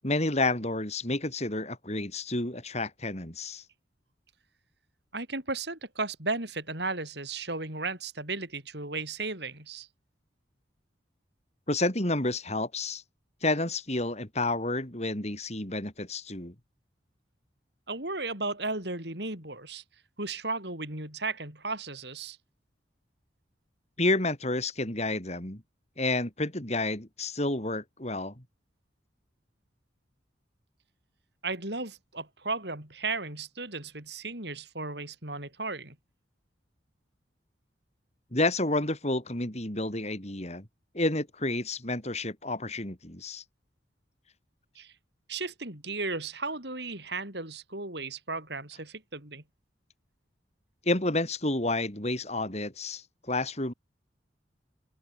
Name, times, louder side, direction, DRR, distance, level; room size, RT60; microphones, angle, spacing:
voice 1, 0.0-3.6 11.7-13.0 13.4-16.5 24.0-25.6 26.0-28.3 38.3-40.7 40.9-43.4 50.8-53.7, left 2 dB, 35° left, 4.9 m, -30 dB
voice 2, 5.1-9.9 17.9-19.8 20.2-22.4 31.4-36.0 44.8-44.9 45.3-49.4, right 3 dB, 60° right, 7.4 m, -35 dB
open air
head